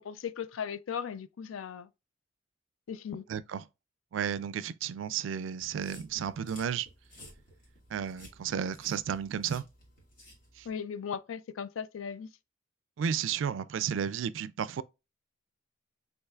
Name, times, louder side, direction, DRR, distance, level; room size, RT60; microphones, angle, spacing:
voice 1, 0.0-1.9 2.9-3.2 10.7-12.3, left 7 dB, 85° left, 0.4 m, -37 dB
voice 2, 3.3-3.7 4.1-6.9 7.9-9.7 10.6-10.7 13.0-14.8, right 8 dB, 70° right, 0.3 m, -33 dB
sound 1, 5.6-10.7, left 1 dB, 45° left, 2.2 m, -55 dB
5.5 x 3.7 x 2.3 m
head